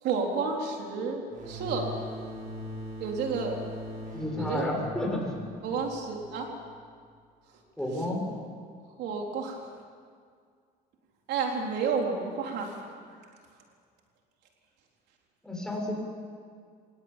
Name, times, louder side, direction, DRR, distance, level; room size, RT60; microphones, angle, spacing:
voice 1, 0.0-1.9 3.0-3.7 4.4-4.7 5.6-6.5 9.0-9.7 11.3-12.9 13.2-13.3, right 5 dB, 80° right, 1 dB, 3.8 m, -31 dB
sound 1, 1.3-6.7, left 1 dB, 50° right, 7.5 m, -41 dB
voice 2, 4.1-5.3 7.8-8.3 15.4-15.9, left 1 dB, 5° left, -1 dB, 7.4 m, -31 dB
25.0 x 19.0 x 9.0 m, 2.1 s
cardioid pair, 110°, 17 cm